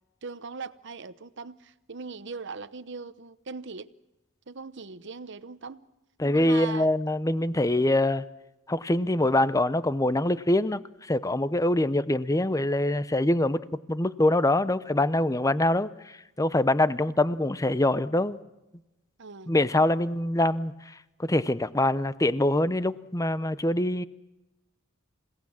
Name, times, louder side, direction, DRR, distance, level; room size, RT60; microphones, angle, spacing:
voice 1, 0.2-3.9 4.5-5.8 6.3-6.9 19.2-19.5, right 4 dB, 60° right, 0.9 m, -40 dB
voice 2, 6.2-8.2 8.7-13.6 13.9-18.4 19.5-20.7 21.2-24.0, left 1 dB, 15° left, 0.7 m, -24 dB
28.0 x 18.0 x 7.3 m
head